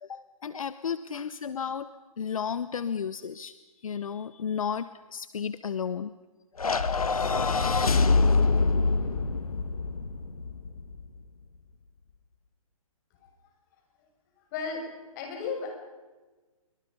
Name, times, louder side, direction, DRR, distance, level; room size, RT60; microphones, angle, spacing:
voice 1, 0.0-1.9 2.2-3.5 3.8-6.1, left 7 dB, 70° left, 14 dB, 1.0 m, -33 dB
sound 1, 6.6-11.0, left 4 dB, 85° left, 1.9 m, -25 dB
voice 2, 14.5-14.9 15.2-15.8, left 5 dB, 30° left, 2 dB, 6.8 m, -34 dB
27.0 x 24.5 x 5.4 m, 1.3 s
hypercardioid pair, 150°, 18 cm